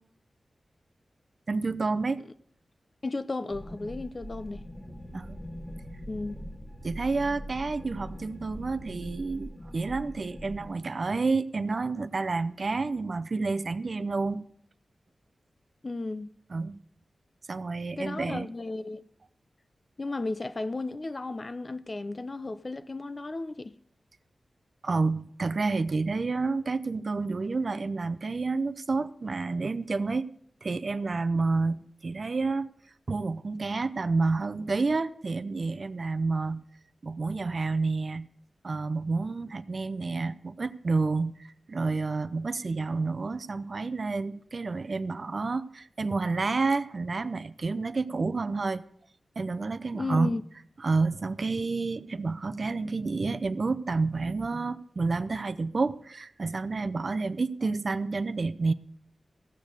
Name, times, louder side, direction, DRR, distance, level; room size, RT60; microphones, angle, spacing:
voice 1, 1.5-2.2 5.1-5.4 6.8-14.4 16.5-16.8 17.5-18.5 24.8-30.3 30.6-32.7 33.1-36.6 37.0-38.3 38.6-48.8 49.4-50.3 50.8-58.7, right 3 dB, 45° right, 0.6 m, -29 dB
voice 2, 3.0-4.6 6.1-6.4 15.8-16.3 18.0-19.0 20.0-23.8 49.9-50.4, left 3 dB, 35° left, 0.5 m, -34 dB
sound 1, 3.5-10.7, equal, 20° left, 1.2 m, -42 dB
sound 2, 4.3-8.8, left 1 dB, 90° left, 2.6 m, -50 dB
15.5 x 7.3 x 6.6 m
wide cardioid pair, 125°, 0 cm